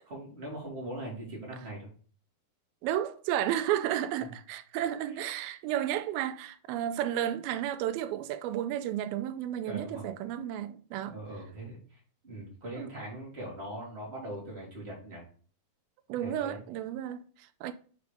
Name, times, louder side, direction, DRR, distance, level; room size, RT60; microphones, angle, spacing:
voice 1, 0.1-1.9 4.2-4.3 9.6-10.1 11.0-15.2 16.2-16.6, right 1 dB, 20° right, 2.3 m, -41 dB
voice 2, 2.8-11.2 12.7-12.9 16.1-17.7, right 11 dB, 90° right, 2.4 m, -32 dB
6.0 x 4.8 x 5.1 m
omnidirectional pair, 4.2 m